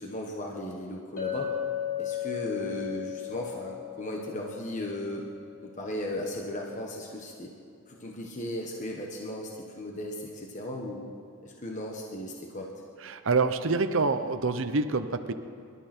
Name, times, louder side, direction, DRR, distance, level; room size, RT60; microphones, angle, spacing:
voice 1, 0.0-1.6 2.0-5.3 5.6-7.5 7.9-11.1 11.4-12.7, left 1 dB, 35° left, 0 dB, 1.4 m, -36 dB
Chink clink, 1.2-5.6, left 11 dB, 70° left, 3.1 m, -35 dB
voice 2, 13.0-15.3, right 3 dB, 60° right, 9 dB, 0.7 m, -26 dB
25.0 x 12.5 x 4.4 m, 2.5 s
head